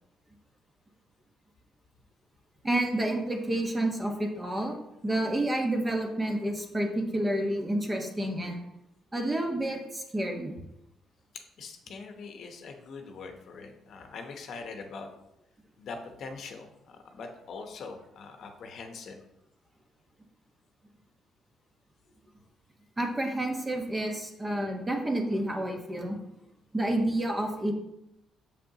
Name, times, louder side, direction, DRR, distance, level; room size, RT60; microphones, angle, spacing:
voice 1, 2.6-4.8 5.0-8.6 9.1-10.6 23.0-26.2 26.7-27.7, right 1 dB, 20° right, 2 dB, 1.1 m, -29 dB
voice 2, 11.3-15.1 15.8-19.2, left 4 dB, 65° left, 4 dB, 0.9 m, -43 dB
6.6 x 5.3 x 2.8 m, 0.84 s
cardioid pair, 95°, 0 cm